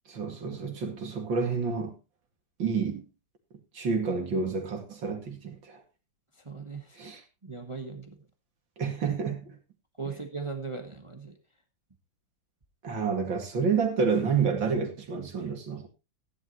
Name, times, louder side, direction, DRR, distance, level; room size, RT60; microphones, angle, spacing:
voice 1, 0.1-1.9 2.6-3.1 3.7-5.8 7.0-7.2 8.8-9.6 12.8-15.9, right 5 dB, 75° right, 3.0 m, -29 dB
voice 2, 6.4-7.0 7.4-8.2 10.0-11.3, right 4 dB, 20° right, 1.3 m, -38 dB
15.0 x 11.0 x 3.1 m
omnidirectional pair, 2.1 m